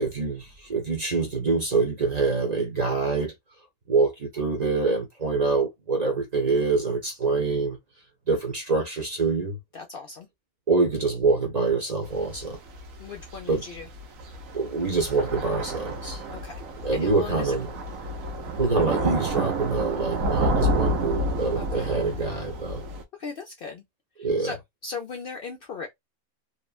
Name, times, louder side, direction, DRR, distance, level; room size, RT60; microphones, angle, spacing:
voice 1, 0.0-3.3 3.9-7.8 8.3-9.6 10.7-12.6 13.5-13.6 14.5-16.2 16.8-17.8 18.6-22.8 24.2-24.6, right 3 dB, 40° right, 0.7 m, -25 dB
voice 2, 9.7-10.3 13.0-13.8 16.3-16.5 16.9-17.5 21.6-21.9 23.2-23.8 24.4-24.6 24.8-25.9, left 5 dB, 60° left, 0.6 m, -37 dB
Thunder / Rain, 12.1-23.0, right 1 dB, 90° right, 1.2 m, -30 dB
2.9 x 2.1 x 2.4 m
omnidirectional pair, 1.4 m